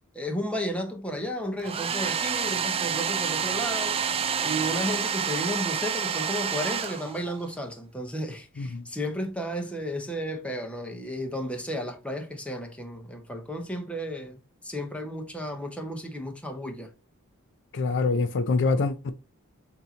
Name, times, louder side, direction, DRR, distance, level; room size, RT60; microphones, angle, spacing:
voice 1, 0.1-4.0 4.4-16.9, equal, 5° left, 0.9 m, -33 dB
Domestic sounds home sounds, 1.6-7.5, right 7 dB, 25° right, 0.4 m, -28 dB
voice 2, 17.7-19.1, left 3 dB, 55° left, 0.4 m, -25 dB
6.7 x 2.8 x 2.8 m
head